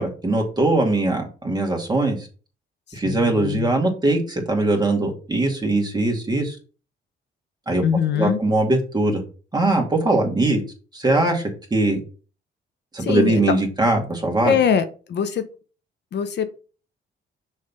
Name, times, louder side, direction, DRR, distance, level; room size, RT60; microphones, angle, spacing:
voice 1, 0.0-2.3 2.9-6.6 7.7-7.8 8.1-9.2 9.5-10.6 10.9-12.0 12.9-14.6, right 2 dB, 20° right, 2 dB, 2.2 m, -21 dB
voice 2, 3.0-3.7 7.8-8.4 13.0-13.6 14.4-15.4 16.1-16.5, left 7 dB, 60° left, 9 dB, 0.8 m, -22 dB
6.5 x 3.3 x 5.6 m, 0.37 s
cardioid pair, 90°, 20 cm